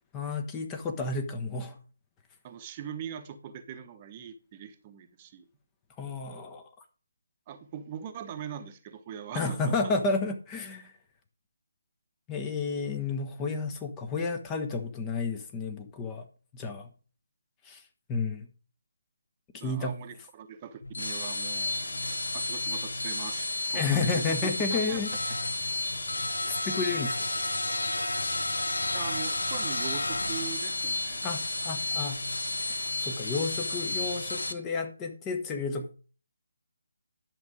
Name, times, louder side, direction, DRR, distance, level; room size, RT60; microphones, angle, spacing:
voice 1, 0.1-1.8 6.0-6.6 9.3-10.9 12.3-16.2 16.5-16.9 17.6-17.8 18.1-18.5 19.5-20.0 23.7-25.1 26.5-27.2 31.2-32.2 32.7-35.9, left 4 dB, 15° left, 5 dB, 1.1 m, -31 dB
voice 2, 2.4-5.4 7.5-9.9 19.6-25.0 28.9-31.2, right 8 dB, 25° right, 7 dB, 1.1 m, -41 dB
sound 1, 20.8-34.5, left 2 dB, 75° left, 1.2 m, -31 dB
11.0 x 6.6 x 5.0 m, 0.38 s
figure-of-eight pair, 150°, 0 cm